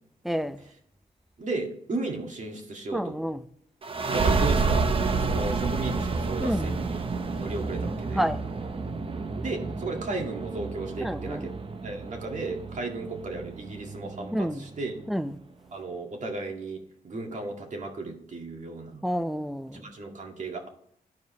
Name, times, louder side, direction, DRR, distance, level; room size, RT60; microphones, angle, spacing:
voice 1, 0.2-0.6 2.9-3.4 6.4-6.8 8.1-8.4 11.0-11.5 14.3-14.7 15.1-15.4 19.0-19.9, equal, ahead, 0.5 m, -29 dB
voice 2, 1.4-3.1 4.1-4.9 5.2-7.0 7.4-8.2 9.3-11.5 11.8-14.9 15.7-16.8 17.0-19.0 19.7-20.7, right 3 dB, 50° right, 2.1 m, -35 dB
sound 1, 3.8-15.1, right 4 dB, 35° right, 0.7 m, -30 dB
13.5 x 4.8 x 3.1 m
wide cardioid pair, 110°, 16 cm